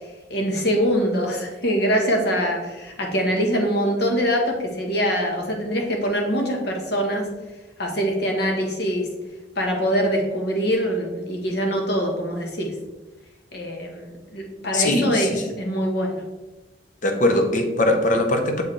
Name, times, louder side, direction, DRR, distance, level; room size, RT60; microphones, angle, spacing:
voice 1, 0.3-7.3 7.8-9.1 9.5-12.7 13.5-15.3 15.6-16.2, equal, 60° left, 2 dB, 1.3 m, -23 dB
voice 2, 14.7-15.4 17.0-18.6, left 1 dB, 45° left, 5 dB, 0.8 m, -21 dB
7.1 x 4.7 x 3.2 m, 1.1 s
head